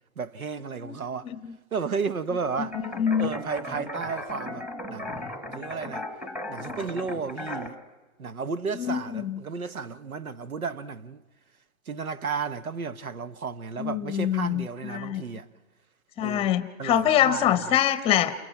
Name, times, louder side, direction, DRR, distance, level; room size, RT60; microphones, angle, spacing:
voice 1, 0.2-1.3 1.7-2.8 3.2-6.0 6.5-7.8 8.2-11.2 11.9-15.5 16.2-16.5 16.8-17.4, right 5 dB, 90° right, 1.2 m, -33 dB
voice 2, 1.2-1.6 2.7-3.4 8.7-9.4 13.8-15.2 16.2-18.3, left 10 dB, 15° left, 0.8 m, -25 dB
sound 1, 2.7-7.7, left 1 dB, 5° right, 1.3 m, -36 dB
28.5 x 28.0 x 5.9 m
hypercardioid pair, 135°, 41 cm